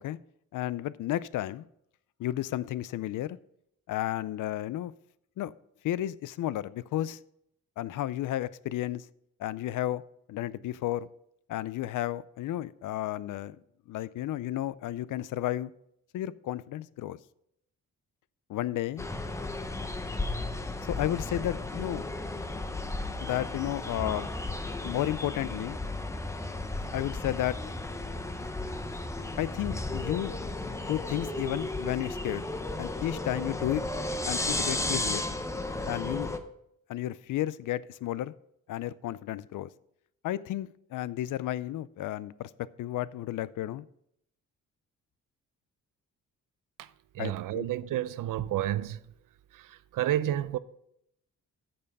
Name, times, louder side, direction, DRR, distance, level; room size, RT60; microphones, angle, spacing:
voice 1, 0.5-1.7 2.2-3.4 3.9-4.9 5.4-5.5 5.8-7.2 7.8-9.1 9.4-10.0 10.3-11.1 11.5-13.6 13.9-15.7 16.1-17.2 18.5-19.1 20.9-22.1 23.2-24.3 24.8-25.8 26.9-27.6 29.4-30.4 30.9-32.5 32.8-33.8 34.3-35.3 35.9-36.3 36.9-38.3 38.7-39.7 40.2-43.9 47.2-47.7, left 13 dB, 75° left, 0.4 m, -32 dB
sound 1, 19.0-36.4, left 2 dB, 10° left, 0.6 m, -34 dB
voice 2, 47.1-49.0 49.5-50.6, right 12 dB, 80° right, 0.6 m, -30 dB
8.7 x 6.9 x 5.2 m
wide cardioid pair, 160°, 32 cm